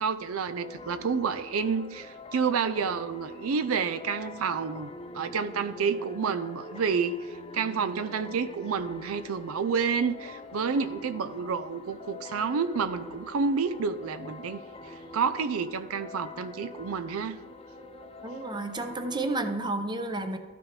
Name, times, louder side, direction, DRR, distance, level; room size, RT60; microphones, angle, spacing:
voice 1, 0.0-17.4, right 5 dB, 85° right, 11 dB, 0.5 m, -29 dB
Solar winds (Perfect loop smaller size), 0.6-19.6, left 2 dB, 30° left, 0.6 m, -45 dB
voice 2, 18.2-20.4, right 2 dB, 20° right, 8 dB, 0.6 m, -31 dB
13.0 x 6.1 x 3.2 m, 1.5 s
head